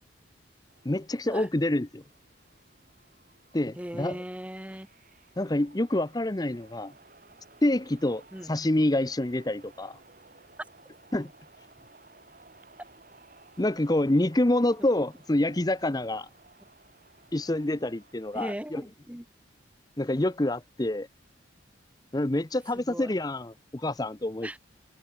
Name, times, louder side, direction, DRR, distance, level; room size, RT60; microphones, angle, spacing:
sound 1, 0.7-18.5, right 3 dB, 45° right, 5.9 m, -57 dB
voice 1, 0.8-2.0 3.5-4.2 5.4-6.9 7.6-10.0 11.1-11.3 13.6-16.3 17.3-18.8 20.0-21.1 22.1-24.5, left 1 dB, 20° left, 0.7 m, -27 dB
voice 2, 3.8-4.9 8.3-8.6 18.3-19.2 22.7-23.1 24.4-24.6, equal, 5° right, 1.1 m, -38 dB
head